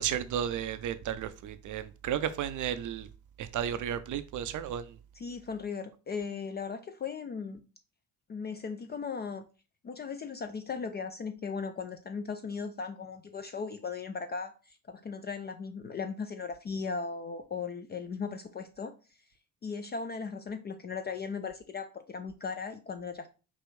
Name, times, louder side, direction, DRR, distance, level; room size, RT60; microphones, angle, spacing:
voice 1, 0.0-3.1 3.4-4.8, right 9 dB, 40° right, 0.5 m, -33 dB
voice 2, 5.1-7.6 8.3-9.5 9.8-18.9 19.6-23.3, left 5 dB, 25° left, 0.3 m, -37 dB
5.3 x 2.5 x 3.1 m
hypercardioid pair, 50°, 47 cm